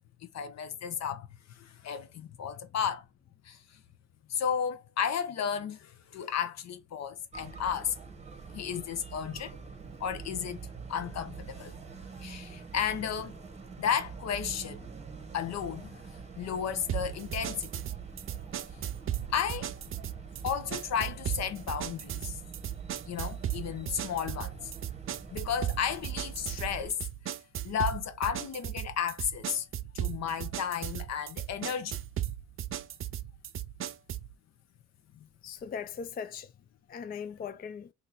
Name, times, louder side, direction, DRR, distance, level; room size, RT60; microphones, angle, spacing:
voice 1, 0.3-3.0 3.4-3.6 4.3-7.9 8.5-9.6 10.0-11.8 12.2-13.4 13.8-14.9 15.3-17.8 18.8-18.9 19.3-19.7 20.4-22.4 23.1-24.7 25.3-27.0 27.6-29.7 29.9-32.0 35.1-35.3, left 8 dB, 60° left, 0.7 m, -33 dB
sound 1, 7.3-26.9, right 5 dB, 20° right, 0.9 m, -45 dB
sound 2, 16.9-34.3, right 11 dB, 45° right, 0.4 m, -36 dB
voice 2, 35.4-36.5 36.9-37.9, left 6 dB, 30° left, 0.4 m, -39 dB
2.9 x 2.6 x 4.0 m
cardioid pair, 90°, 30 cm